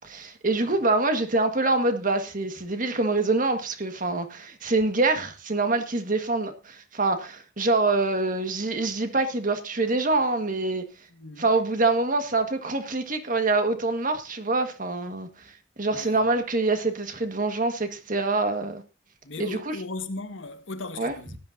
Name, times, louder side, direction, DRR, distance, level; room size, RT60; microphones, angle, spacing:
voice 1, 0.0-10.9 11.4-15.3 15.8-18.8 19.4-19.8 21.0-21.1, right 3 dB, 45° right, 1.7 m, -25 dB
voice 2, 11.1-11.5 15.9-16.3 19.2-21.4, left 3 dB, 75° left, 1.6 m, -37 dB
17.5 x 11.0 x 2.7 m
head